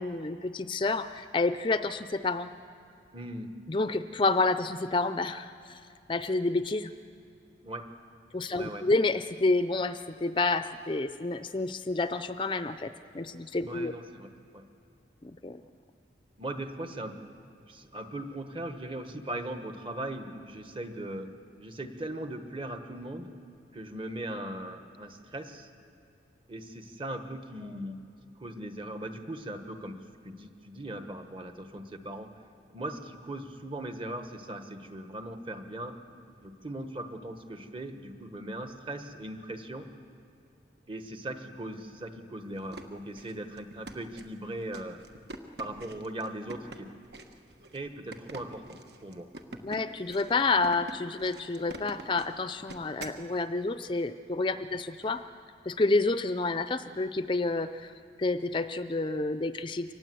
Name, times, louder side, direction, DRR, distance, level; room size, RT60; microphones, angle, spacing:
voice 1, 0.0-2.5 3.7-5.8 6.1-6.9 8.3-13.9 15.2-15.6 49.6-55.2 55.7-59.9, left 3 dB, 30° left, 11 dB, 0.5 m, -29 dB
voice 2, 3.1-3.6 7.6-7.9 8.5-8.9 13.6-14.7 16.4-17.3 17.7-21.3 21.6-23.3 23.7-25.7 26.5-28.0 28.4-32.3 32.7-36.0 36.4-39.9 40.9-45.0 45.6-46.9 47.7-49.7, right 1 dB, 30° right, 7 dB, 1.3 m, -39 dB
sound 1, 42.5-53.2, right 2 dB, 65° right, 1.3 m, -45 dB
25.0 x 19.0 x 7.8 m, 2.6 s
head